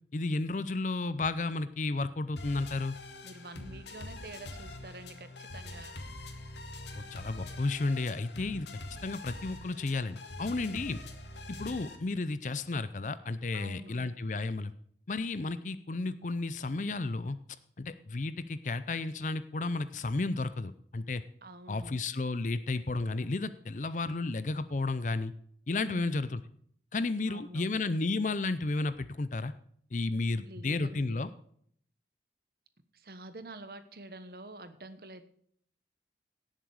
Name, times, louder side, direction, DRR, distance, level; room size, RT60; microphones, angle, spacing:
voice 1, 0.1-3.0 6.9-8.7 9.0-11.0 11.5-14.7 15.1-17.4 17.8-21.2 21.7-25.3 25.7-26.4 26.9-29.5 29.9-31.3, left 3 dB, 45° left, 14 dB, 0.5 m, -32 dB
sound 1, 2.4-12.0, left 2 dB, 80° left, 2.0 m, -44 dB
voice 2, 3.2-6.0 13.5-14.1 21.4-22.0 25.8-26.1 27.3-27.7 30.4-31.4 32.9-35.3, right 2 dB, 55° right, 10 dB, 1.2 m, -47 dB
17.5 x 7.5 x 4.9 m, 0.62 s
head